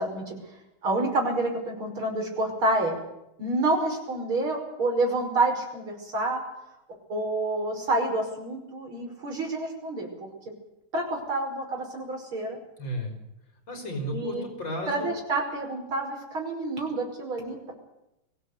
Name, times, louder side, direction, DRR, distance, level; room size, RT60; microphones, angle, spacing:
voice 1, 0.0-3.0 3.4-6.4 7.1-10.3 10.9-12.6 14.1-14.4 14.9-17.7, right 2 dB, 85° right, 1 dB, 6.1 m, -28 dB
voice 2, 12.8-13.2 13.7-15.1, equal, 60° left, 4 dB, 5.2 m, -33 dB
22.5 x 16.0 x 8.1 m, 0.87 s
omnidirectional pair, 2.2 m